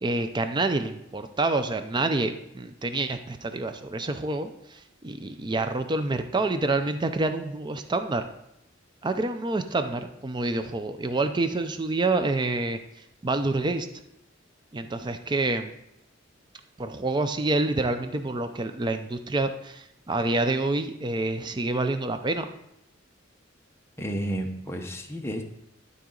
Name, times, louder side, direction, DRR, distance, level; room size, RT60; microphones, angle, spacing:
voice 1, 0.0-8.3 9.0-12.8 13.2-13.9 14.7-15.7 16.8-22.5, right 2 dB, 20° right, 8 dB, 0.4 m, -27 dB
voice 2, 24.0-25.4, right 1 dB, 10° left, 2 dB, 0.8 m, -31 dB
12.0 x 4.1 x 3.8 m, 0.80 s
head